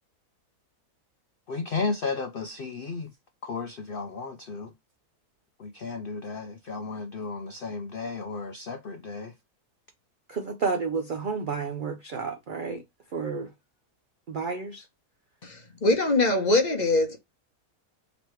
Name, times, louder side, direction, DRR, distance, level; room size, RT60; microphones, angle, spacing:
voice 1, 1.5-3.1 3.4-4.7 5.6-9.3, left 4 dB, 75° left, 0.5 m, -34 dB
voice 2, 10.3-12.8 13.1-13.5 14.3-14.9, right 5 dB, 80° right, 0.4 m, -31 dB
voice 3, 15.4-17.2, left 2 dB, 35° left, 0.8 m, -23 dB
4.1 x 3.0 x 3.1 m
omnidirectional pair, 1.7 m